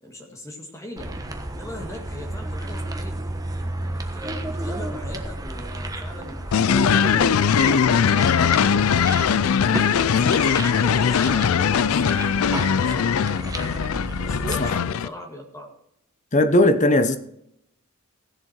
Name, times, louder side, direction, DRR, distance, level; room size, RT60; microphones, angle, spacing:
voice 1, 0.0-1.1 1.5-3.3 3.8-6.4 6.7-8.8 9.7-13.3 14.2-15.7, left 1 dB, 15° left, 1.8 m, -39 dB
sound 1, 1.0-14.7, right 1 dB, 15° right, 1.3 m, -32 dB
sound 2, 6.5-15.1, left 7 dB, 80° left, 0.4 m, -20 dB
voice 2, 16.3-17.2, left 1 dB, 35° left, 0.9 m, -18 dB
16.0 x 7.3 x 4.4 m
head